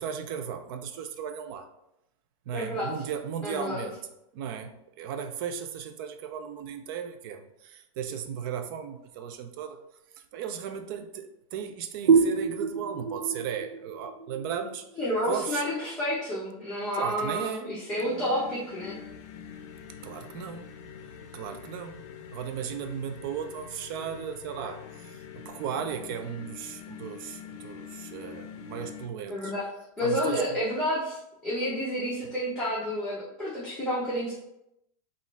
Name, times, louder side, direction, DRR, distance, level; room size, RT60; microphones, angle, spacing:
voice 1, 0.0-1.7 2.5-4.0 4.3-9.8 10.3-14.9 15.3-15.7 16.9-17.7 20.0-20.7 21.3-22.0 22.3-29.5 30.0-30.6, right 8 dB, 40° right, 8 dB, 0.4 m, -36 dB
voice 2, 2.5-2.9 3.4-3.9 15.0-19.0 29.3-29.7 30.0-34.3, equal, 5° left, -9 dB, 0.7 m, -30 dB
sound 1, 12.1-15.5, right 5 dB, 90° right, 0.6 m, -26 dB
sound 2, 18.0-29.1, left 8 dB, 50° left, 0.6 m, -45 dB
4.1 x 2.5 x 4.0 m, 0.84 s
supercardioid pair, 165°, 18 cm